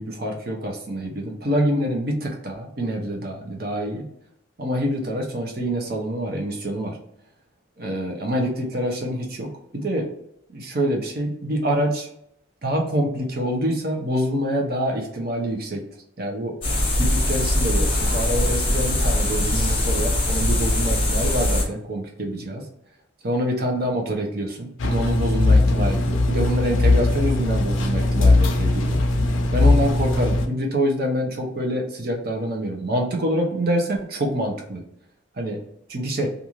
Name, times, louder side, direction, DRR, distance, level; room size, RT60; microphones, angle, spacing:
voice 1, 0.0-4.0 4.6-7.0 7.8-10.1 10.5-12.1 12.6-15.8 16.2-16.6 17.0-22.7 23.2-29.0 29.5-34.8 35.3-35.6 35.9-36.3, equal, 50° right, 1 dB, 0.7 m, -26 dB
sound 1, 16.6-21.6, left 1 dB, 25° left, 0.7 m, -21 dB
sound 2, 24.8-30.5, left 2 dB, 80° left, 0.5 m, -19 dB
2.6 x 2.4 x 2.9 m, 0.75 s
head